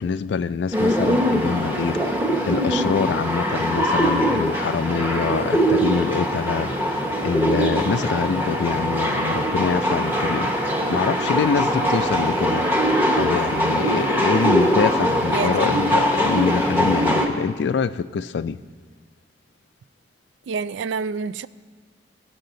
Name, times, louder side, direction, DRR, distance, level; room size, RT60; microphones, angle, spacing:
voice 1, 0.0-12.7 13.1-18.6, left 6 dB, 65° left, 0.3 m, -25 dB
sound 1, 0.7-17.3, equal, 10° right, 0.9 m, -22 dB
voice 2, 15.3-15.6 20.5-21.5, right 5 dB, 75° right, 0.3 m, -27 dB
18.5 x 6.4 x 3.9 m
head